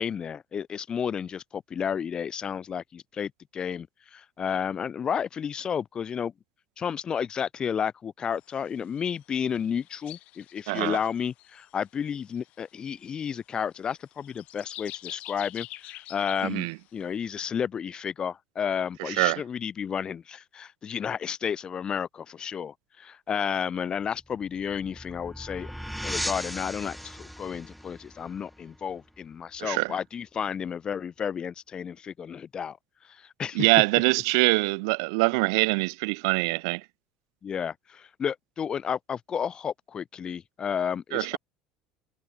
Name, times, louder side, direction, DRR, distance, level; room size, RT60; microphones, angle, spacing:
voice 1, 0.0-6.3 6.8-25.7 26.0-32.8 33.0-33.7 37.4-41.4, left 7 dB, 35° left, 3.9 m, -32 dB
sound 1, 8.3-8.6 8.8-9.2 9.5-11.8 12.2-13.3 14.1-16.8, left 17 dB, 60° left, 2.5 m, -45 dB
voice 2, 10.7-11.0 16.4-16.7 19.2-19.4 29.6-29.9 33.5-36.8 41.1-41.4, right 30 dB, 80° right, 1.6 m, -24 dB
sound 2, 24.2-29.6, equal, ahead, 2.2 m, -38 dB
supercardioid pair, 110°, 2 cm